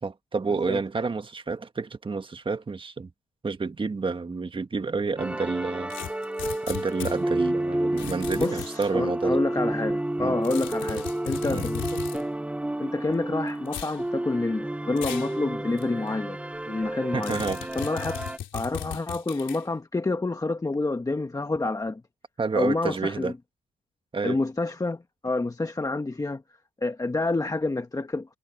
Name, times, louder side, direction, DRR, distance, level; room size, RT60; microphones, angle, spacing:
voice 1, 0.0-3.1 3.4-5.9 6.7-9.4 10.2-10.4 11.5-11.7 17.1-17.7 22.4-23.3 24.1-24.4, right 4 dB, 25° right, 1.6 m, -29 dB
sound 1, 5.2-18.4, right 1 dB, 5° right, 0.5 m, -30 dB
sound 2, 5.9-7.2 8.0-8.9 10.4-12.2 13.7-14.0 15.0-15.3 15.8-15.9 17.2-19.6, left 10 dB, 70° left, 3.5 m, -37 dB
voice 2, 8.4-12.3 12.8-16.4 16.7-17.4 17.7-18.2 18.5-22.0 22.5-23.3 24.2-26.4 26.8-28.3, left 2 dB, 15° left, 1.3 m, -28 dB
cardioid pair, 90°, 20 cm